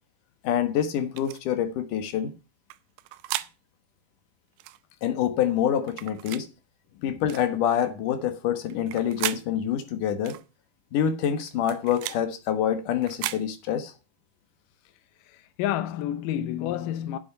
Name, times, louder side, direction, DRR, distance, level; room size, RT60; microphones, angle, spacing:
voice 1, 0.4-2.3 5.0-6.5 7.0-10.4 10.9-13.9, left 9 dB, 65° left, 2.5 m, -26 dB
sound 1, 1.2-1.4 2.7-3.5 4.6-4.8 5.9-6.5 7.3-7.5 8.7-9.4 10.3-10.4 11.4-12.2 13.0-13.4, right 16 dB, 80° right, 2.5 m, -34 dB
voice 2, 15.2-17.2, left 11 dB, 80° left, 1.9 m, -30 dB
9.2 x 7.6 x 5.6 m
omnidirectional pair, 4.7 m